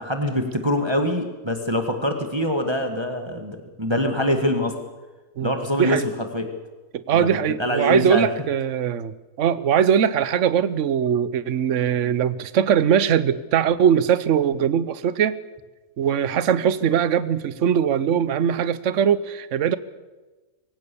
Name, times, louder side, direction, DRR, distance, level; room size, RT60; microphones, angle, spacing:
voice 1, 0.0-4.8 5.4-6.5 7.1-8.3, left 1 dB, 20° right, 5 dB, 1.8 m, -24 dB
voice 2, 6.9-15.4 16.0-19.8, right 8 dB, 65° right, 15 dB, 1.2 m, -21 dB
24.5 x 17.0 x 7.0 m, 1.2 s
omnidirectional pair, 1.4 m